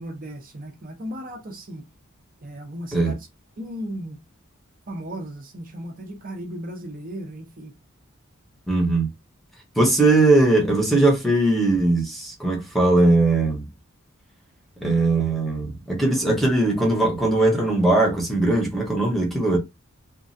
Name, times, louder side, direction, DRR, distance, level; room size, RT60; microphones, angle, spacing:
voice 1, 0.0-1.8 2.4-3.2 3.6-4.2 4.9-7.7, equal, 40° right, 0.7 m, -35 dB
voice 2, 8.7-9.1 9.8-13.7 14.8-19.6, right 2 dB, ahead, 0.9 m, -20 dB
3.0 x 2.4 x 2.6 m
head